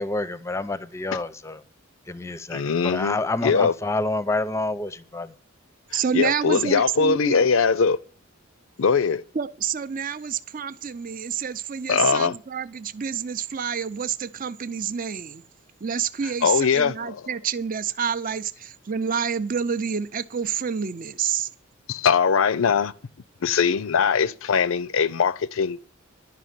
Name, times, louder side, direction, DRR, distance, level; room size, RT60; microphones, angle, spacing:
voice 1, 0.0-1.6 2.1-5.3, left 2 dB, 15° left, 0.6 m, -28 dB
voice 2, 2.5-3.2 3.4-3.7 5.9-8.0 8.8-9.2 11.9-12.4 16.4-17.2 21.9-22.9 23.4-25.8, left 6 dB, 75° left, 0.5 m, -21 dB
voice 3, 5.9-7.4 9.3-15.4 15.8-21.5, right 7 dB, 40° right, 0.6 m, -28 dB
11.5 x 5.9 x 9.1 m
head